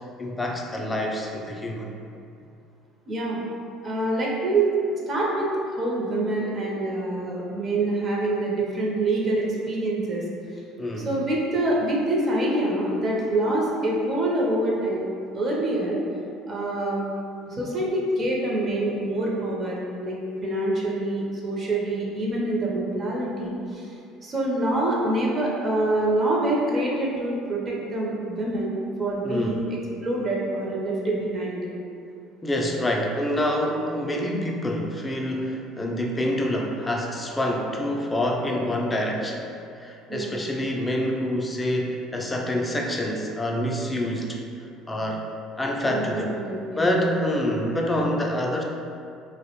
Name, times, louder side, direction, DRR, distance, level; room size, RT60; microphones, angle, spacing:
voice 1, 0.2-1.9 10.8-11.2 29.2-29.6 32.4-39.5 39.8-45.2 45.6-46.4 46.8-48.6, left 1 dB, 20° left, 0 dB, 0.3 m, -26 dB
voice 2, 3.1-3.4 3.8-4.7 5.1-10.2 11.0-15.1 15.3-16.0 16.5-17.1 17.5-23.9 24.2-29.6 30.0-31.7 40.1-40.3 45.8-46.8, right 1 dB, 40° right, -4 dB, 0.5 m, -26 dB
2.4 x 2.0 x 2.9 m, 2.5 s
supercardioid pair, 90°, 0 cm